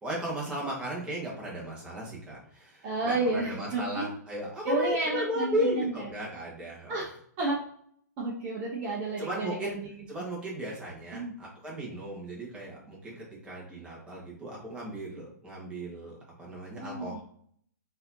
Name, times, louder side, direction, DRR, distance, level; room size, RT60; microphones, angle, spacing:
voice 1, 0.0-6.9 9.2-9.8 10.1-17.2, equal, 10° right, -5 dB, 1.2 m, -35 dB
voice 2, 2.8-4.1 4.6-5.9 6.9-7.6 8.2-9.9 11.1-11.3 16.8-17.2, right 2 dB, 30° right, -4 dB, 0.8 m, -31 dB
4.0 x 2.8 x 2.7 m, 0.62 s
hypercardioid pair, 140°, 10 cm